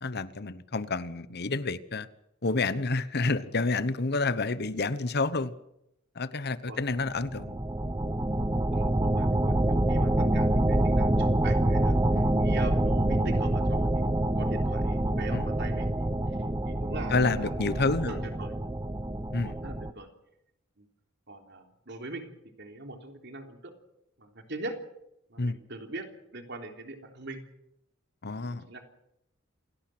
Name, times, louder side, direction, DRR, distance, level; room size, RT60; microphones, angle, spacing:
voice 1, 0.0-2.1 2.4-5.5 6.1-7.6 12.1-12.3 15.3-15.5 17.1-18.2 19.3-19.6 25.4-25.6 28.2-28.8, left 3 dB, 55° left, 1.1 m, -29 dB
sound 1, 7.1-19.9, right 1 dB, 15° right, 0.8 m, -26 dB
voice 2, 8.7-12.0 12.4-13.9 14.3-15.9 16.6-18.5 19.4-20.1 20.8-20.9 21.3-23.7 24.2-24.8 25.3-26.1 26.3-27.4 28.4-28.8, right 2 dB, 60° right, 3.5 m, -42 dB
28.0 x 18.0 x 6.1 m
head